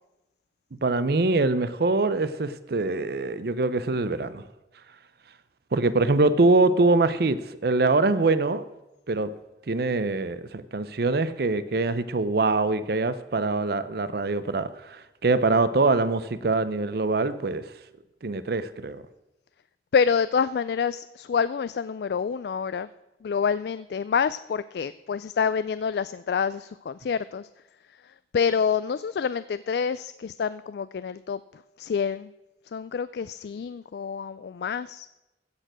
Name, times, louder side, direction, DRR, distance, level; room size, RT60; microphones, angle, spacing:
voice 1, 0.8-4.4 5.7-8.7 9.1-9.3 9.7-17.6 18.2-19.0, right 3 dB, 60° right, 14 dB, 0.6 m, -24 dB
voice 2, 19.9-22.9 23.2-27.5 28.0-32.3 32.7-35.1, left 6 dB, 60° left, 15 dB, 0.3 m, -27 dB
16.0 x 6.7 x 6.1 m, 0.98 s
head